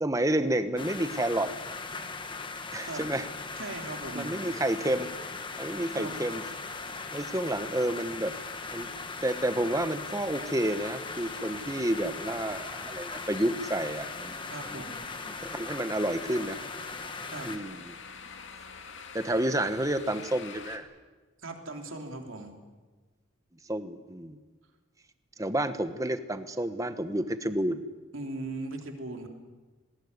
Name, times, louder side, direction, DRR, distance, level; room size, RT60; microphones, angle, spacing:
voice 1, 0.0-1.5 2.7-3.3 4.1-5.1 5.6-6.4 7.1-8.3 8.7-8.9 9.2-14.4 14.6-14.9 15.3-16.6 17.4-17.9 19.1-20.9 23.7-24.4 25.4-27.8, right 1 dB, 15° right, 10 dB, 1.1 m, -30 dB
sound 1, 0.8-17.6, left 4 dB, 25° left, 1.4 m, -39 dB
voice 2, 3.6-4.3 5.9-6.2 14.5-15.0 17.3-17.5 21.4-22.5 28.1-29.3, right 2 dB, 70° right, 3 dB, 3.3 m, -38 dB
sound 2, 5.3-20.8, left 5 dB, 60° left, 2.1 m, -49 dB
19.5 x 19.5 x 9.6 m, 1.3 s
head